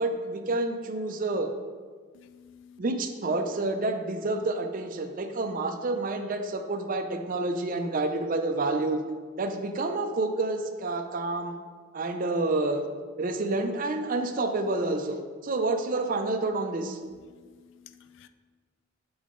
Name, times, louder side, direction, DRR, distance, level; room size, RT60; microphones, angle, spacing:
voice 1, 0.0-1.5 2.8-9.0 9.4-11.6 11.9-12.8 13.2-17.0, right 2 dB, 40° right, 6 dB, 0.5 m, -29 dB
voice 2, 2.1-2.8 17.3-18.3, left 8 dB, 60° left, 11 dB, 0.3 m, -53 dB
7.7 x 3.6 x 3.7 m, 1.5 s
head